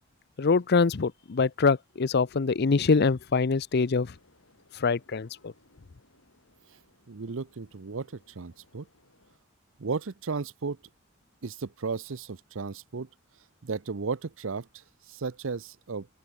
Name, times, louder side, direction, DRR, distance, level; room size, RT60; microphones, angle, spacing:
voice 1, 0.4-4.1 4.8-5.5, left 4 dB, 50° left, 0.6 m, -24 dB
sound 1, 3.8-9.4, left 2 dB, 75° left, 6.5 m, -64 dB
voice 2, 7.1-8.9 9.8-10.8 11.4-13.1 13.6-16.1, right 4 dB, 70° right, 0.7 m, -34 dB
head